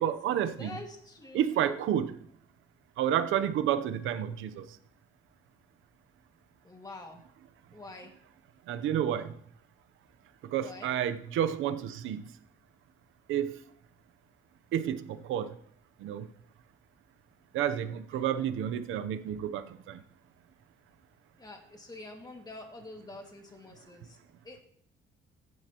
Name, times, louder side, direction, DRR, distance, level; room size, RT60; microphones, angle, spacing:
voice 1, 0.0-0.8 1.3-2.2 3.0-4.6 8.7-9.3 10.5-12.3 13.3-13.6 14.7-15.6 16.0-16.3 17.5-20.0, right 10 dB, 90° right, 10 dB, 0.8 m, -30 dB
voice 2, 0.6-1.8 6.6-7.2 7.7-8.1 10.6-10.9 18.1-18.2 21.4-24.2 24.4-24.6, left 2 dB, 20° left, 1 dB, 2.1 m, -46 dB
15.0 x 9.6 x 3.0 m, 0.64 s
cardioid pair, 90°, 20 cm